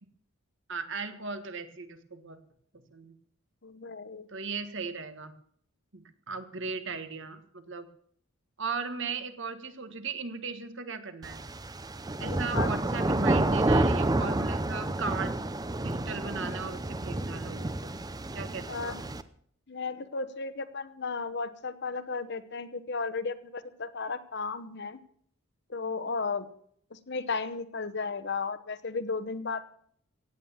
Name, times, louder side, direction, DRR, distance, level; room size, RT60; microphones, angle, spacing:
voice 1, 0.7-2.4 2.9-3.1 4.3-5.3 5.9-7.9 8.6-11.4 12.2-15.3 15.8-17.9 18.3-19.0, right 4 dB, 60° right, 10 dB, 1.6 m, -37 dB
voice 2, 3.6-4.3 12.2-12.7 18.7-19.2 19.7-25.0 25.7-26.4 26.9-29.8, left 4 dB, 50° left, 13 dB, 1.0 m, -34 dB
sound 1, 11.2-19.2, right 2 dB, 20° right, 0.6 m, -29 dB
16.5 x 9.1 x 7.2 m, 0.62 s
head